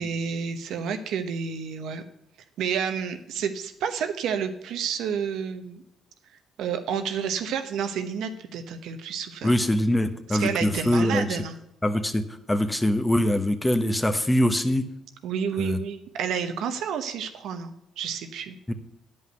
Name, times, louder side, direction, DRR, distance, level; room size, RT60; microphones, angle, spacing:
voice 1, 0.0-2.0 2.6-5.8 6.6-9.5 10.3-11.6 15.2-18.5, right 7 dB, 75° right, 8 dB, 1.0 m, -30 dB
voice 2, 9.4-11.4 11.8-14.9 15.6-15.8 18.7-18.8, left 1 dB, 15° left, 9 dB, 1.1 m, -23 dB
9.6 x 5.5 x 8.0 m, 0.79 s
supercardioid pair, 70°, 0 cm